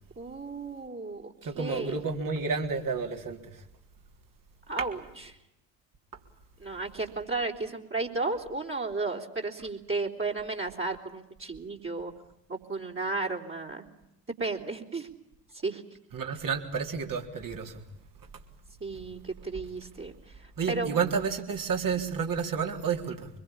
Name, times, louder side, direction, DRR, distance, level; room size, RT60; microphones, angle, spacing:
voice 1, 0.2-2.0 4.7-5.4 6.6-12.1 12.5-13.8 14.4-15.1 15.6-15.8 18.8-21.1, right 3 dB, 25° right, -1 dB, 3.7 m, -34 dB
voice 2, 1.4-3.4 16.1-17.8 20.6-23.3, right 5 dB, 40° right, 3 dB, 3.8 m, -30 dB
25.5 x 22.0 x 8.8 m, 0.85 s
figure-of-eight pair, 45°, 48 cm